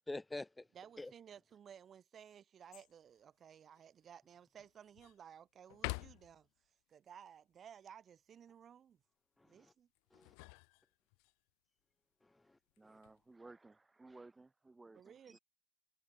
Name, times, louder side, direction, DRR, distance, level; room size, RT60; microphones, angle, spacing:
voice 1, 0.1-0.7 1.0-1.1 9.4-9.7 10.1-10.3 12.2-13.0, left 2 dB, 10° left, 1.4 m, -47 dB
voice 2, 0.7-6.5 6.9-9.0 9.4-9.9 14.9-15.4, right 8 dB, 40° right, 2.6 m, -57 dB
sound 1, 2.7-3.2 3.7-3.8 4.4-5.2 5.7-6.5 10.0-11.3 12.7-13.2, left 40 dB or more, 75° left, 1.6 m, -47 dB
voice 3, 12.8-15.4, right 3 dB, 15° right, 4.1 m, -58 dB
supercardioid pair, 95°, 0 cm